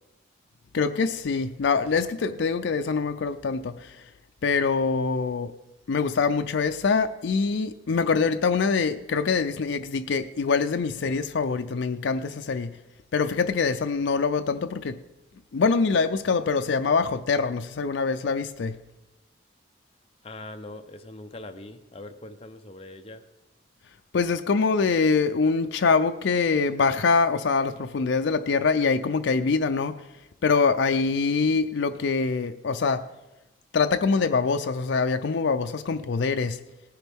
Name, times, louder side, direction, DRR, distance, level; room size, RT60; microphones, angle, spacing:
voice 1, 0.7-4.0 4.4-5.5 5.9-12.7 13.1-15.0 15.5-18.7 24.1-29.9 30.4-33.0 33.7-36.6, left 4 dB, 65° left, 7 dB, 0.4 m, -24 dB
voice 2, 20.2-23.2, left 2 dB, 30° left, 6 dB, 0.7 m, -42 dB
18.0 x 10.5 x 3.5 m, 0.98 s
head